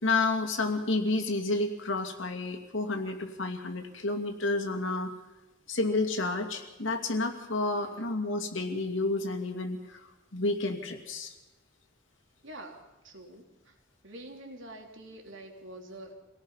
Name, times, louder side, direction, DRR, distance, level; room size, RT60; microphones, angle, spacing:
voice 1, 0.0-5.1 5.7-11.3, left 2 dB, 80° left, 4 dB, 2.6 m, -30 dB
voice 2, 7.7-8.1 12.4-13.8 14.0-16.1, right 1 dB, 75° right, 2 dB, 3.3 m, -46 dB
25.5 x 18.0 x 5.7 m, 0.98 s
head